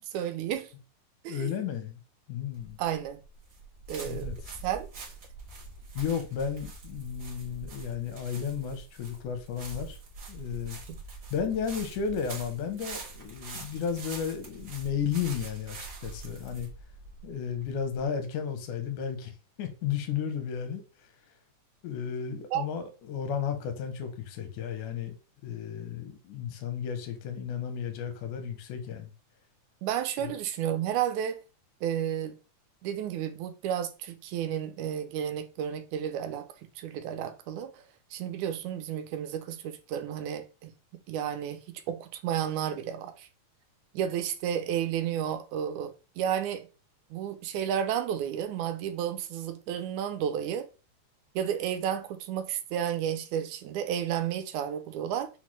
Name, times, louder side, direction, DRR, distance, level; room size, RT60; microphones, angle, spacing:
voice 1, 0.1-0.7 1.2-1.6 2.8-3.2 3.9-4.3 4.6-4.9 22.5-22.6 29.8-31.4 31.8-32.4 32.8-36.5 36.8-37.8 38.1-40.7 41.1-43.3 43.9-46.7 47.1-50.7 51.4-55.3, right 9 dB, 80° right, 2.0 m, -32 dB
voice 2, 1.3-2.0 2.3-2.8 4.0-4.6 5.9-10.0 10.3-10.8 11.3-16.7 17.2-20.8 21.8-25.1 25.4-29.1 30.2-30.3, left 7 dB, 85° left, 2.2 m, -33 dB
sound 1, 2.5-18.1, right 4 dB, 60° right, 0.9 m, -44 dB
5.7 x 2.1 x 3.0 m
omnidirectional pair, 3.4 m